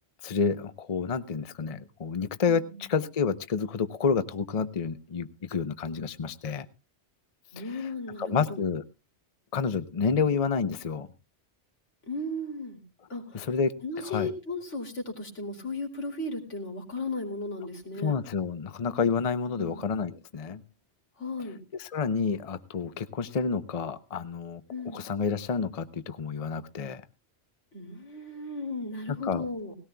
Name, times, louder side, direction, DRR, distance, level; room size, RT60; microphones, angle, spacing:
voice 1, 0.2-6.7 7.6-7.9 8.2-8.8 9.5-11.1 13.3-13.7 14.0-14.3 18.0-20.6 21.7-24.6 24.9-27.0 29.1-29.5, left 5 dB, 35° left, 12 dB, 0.7 m, -29 dB
voice 2, 2.5-2.9 7.5-8.7 10.2-10.3 12.1-12.8 13.1-13.5 13.8-18.2 19.4-19.9 21.2-21.6 24.7-25.0 27.7-29.8, left 2 dB, 80° left, 1 dB, 3.1 m, -36 dB
18.5 x 17.0 x 2.2 m, 0.29 s
omnidirectional pair, 1.2 m